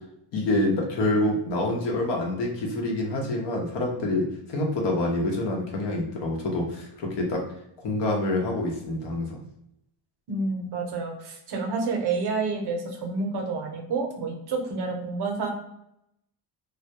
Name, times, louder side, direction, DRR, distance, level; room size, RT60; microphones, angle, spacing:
voice 1, 0.3-7.4 7.8-9.4, left 1 dB, 60° left, 0 dB, 0.8 m, -26 dB
voice 2, 10.3-15.5, right 4 dB, 55° right, 2 dB, 0.7 m, -29 dB
2.2 x 2.1 x 2.7 m, 0.80 s
cardioid pair, 110°, 48 cm